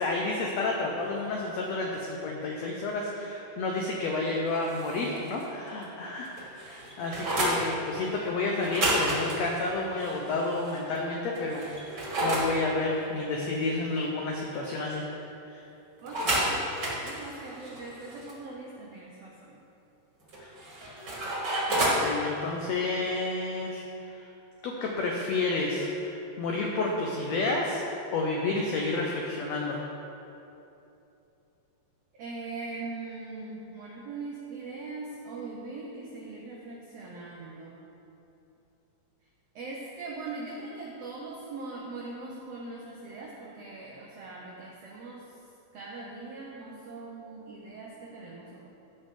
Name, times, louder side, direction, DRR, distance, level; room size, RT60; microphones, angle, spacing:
voice 1, 0.0-15.0 15.5-15.6 20.4-20.5 20.8-21.0 21.7-24.3 24.6-27.9 28.1-29.8, left 3 dB, 85° left, -1 dB, 1.5 m, -30 dB
sound 1, 4.5-5.5 5.8-5.9 6.2-7.6 8.6-10.8 11.3-12.5 16.1-18.3 20.3-22.1, right 1 dB, 40° right, 1.7 m, -30 dB
voice 2, 16.0-16.6 17.0-19.6 32.2-37.8 39.5-45.4 45.7-48.7, right 3 dB, 85° right, -2 dB, 1.4 m, -41 dB
15.5 x 5.4 x 3.7 m, 2.9 s
omnidirectional pair, 4.0 m